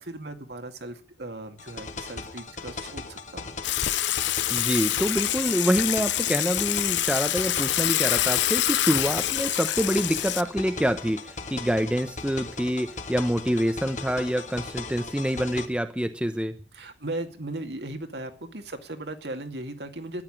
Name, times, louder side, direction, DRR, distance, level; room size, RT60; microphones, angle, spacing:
voice 1, 0.0-3.5 16.4-20.2, right 2 dB, 65° right, 6 dB, 2.3 m, -37 dB
sound 1, 1.6-15.7, left 4 dB, 40° left, 1.7 m, -38 dB
Water / Water tap faucet / Sink (filling or washing), 3.6-10.4, left 13 dB, 80° left, 0.7 m, -26 dB
voice 2, 4.5-16.5, equal, 5° right, 9 dB, 0.8 m, -26 dB
13.0 x 10.5 x 8.9 m, 0.40 s
head